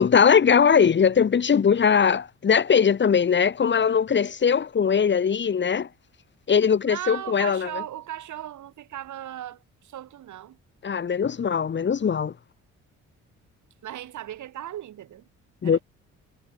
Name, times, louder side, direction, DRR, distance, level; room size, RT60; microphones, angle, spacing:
voice 1, 0.0-5.9 6.5-7.7 10.8-12.3 15.6-15.8, left 7 dB, 40° left, 1.1 m, -20 dB
voice 2, 6.8-10.6 13.8-15.3 15.6-15.8, right 12 dB, 75° right, 6.5 m, -37 dB
cardioid pair, 90°, 30 cm